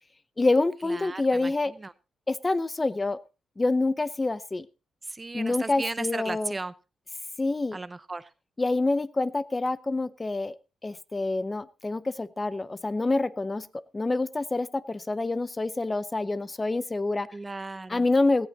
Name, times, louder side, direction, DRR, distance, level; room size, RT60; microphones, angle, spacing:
voice 1, 0.4-1.7 2.3-3.2 3.6-4.7 5.3-6.6 7.4-7.8 8.6-10.6 10.8-17.3 17.9-18.5, left 2 dB, 20° left, 15 dB, 0.7 m, -27 dB
voice 2, 5.2-6.7 7.7-8.2 17.3-18.0, right 3 dB, 20° right, 15 dB, 0.6 m, -35 dB
18.0 x 13.5 x 2.9 m, 0.29 s
cardioid pair, 115°, 0 cm